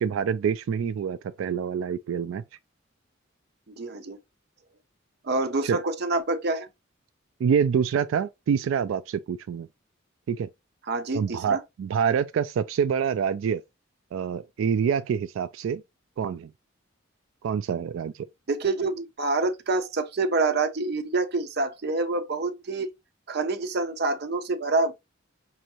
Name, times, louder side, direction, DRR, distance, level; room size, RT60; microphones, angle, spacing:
voice 1, 0.0-2.4 5.6-5.8 7.4-9.7 10.3-10.5 11.1-13.6 14.1-15.8 16.2-16.5 17.4-18.3, right 7 dB, 85° right, 0.3 m, -26 dB
voice 2, 3.7-4.2 5.2-6.7 10.9-11.6 18.5-22.9 23.3-24.9, right 3 dB, 55° right, 0.7 m, -27 dB
5.5 x 2.6 x 2.9 m
head